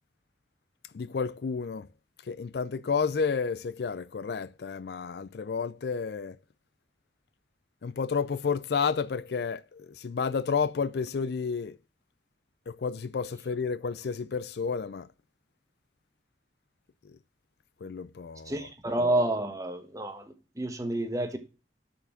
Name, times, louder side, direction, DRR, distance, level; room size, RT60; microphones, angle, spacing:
voice 1, 0.9-1.9 2.3-6.4 7.8-11.8 12.7-15.1 17.0-17.1 17.8-18.7, left 5 dB, 60° left, 0.4 m, -31 dB
voice 2, 18.5-20.2 20.6-21.4, right 1 dB, 20° right, 1.3 m, -29 dB
6.8 x 6.6 x 7.2 m
head